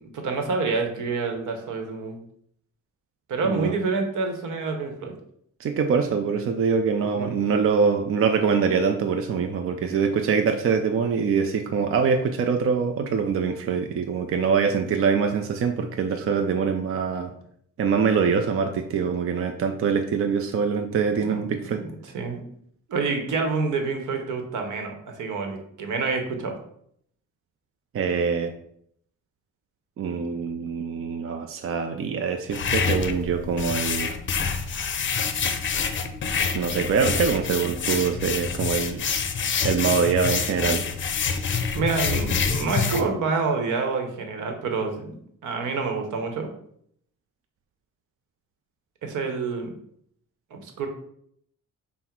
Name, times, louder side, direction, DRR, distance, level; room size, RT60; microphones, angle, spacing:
voice 1, 0.0-2.2 3.3-5.1 7.2-7.3 21.2-21.5 21.8-22.5 22.9-26.5 41.7-46.5 49.0-49.7 50.5-50.9, right 4 dB, 80° right, 4 dB, 1.0 m, -28 dB
voice 2, 5.6-17.3 17.8-21.8 27.9-28.5 30.0-34.1 36.5-39.0 39.6-40.8, right 6 dB, 45° right, 5 dB, 0.5 m, -24 dB
sound 1, 32.5-43.0, left 6 dB, 40° left, 0.6 m, -27 dB
5.6 x 2.1 x 4.4 m, 0.68 s
cardioid pair, 90°, 30 cm